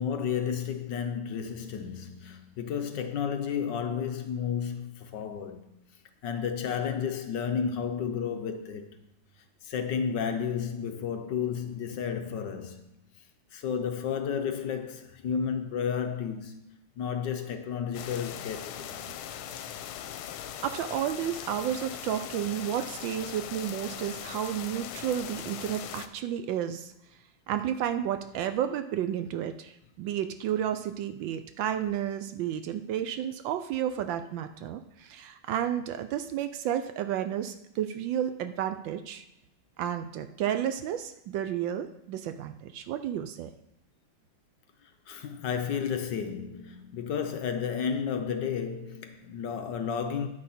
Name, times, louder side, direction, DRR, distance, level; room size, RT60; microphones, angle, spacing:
voice 1, 0.0-5.6 6.2-8.9 9.6-12.8 13.5-16.5 17.0-19.0 45.1-50.3, left 7 dB, 65° left, 1.3 m, -32 dB
sound 1, 17.9-26.1, left 10 dB, 85° left, 1.5 m, -40 dB
voice 2, 20.6-26.9 27.5-39.2 39.8-43.5, right 10 dB, 75° right, 1.2 m, -32 dB
9.6 x 9.5 x 4.2 m
omnidirectional pair, 2.3 m